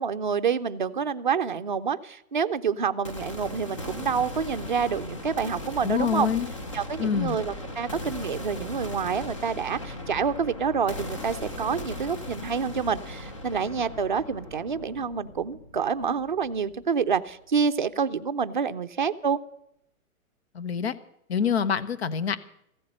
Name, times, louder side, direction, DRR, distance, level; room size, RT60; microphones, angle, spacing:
voice 1, 0.0-6.3 6.7-19.4, right 6 dB, 35° right, 9 dB, 0.6 m, -28 dB
sound 1, 3.0-17.0, left 1 dB, 20° left, 0.7 m, -38 dB
voice 2, 5.8-6.5 7.0-7.4 20.5-21.0 21.3-22.4, left 7 dB, 45° left, 15 dB, 1.0 m, -26 dB
15.5 x 8.4 x 10.0 m, 0.74 s
hypercardioid pair, 175°, 43 cm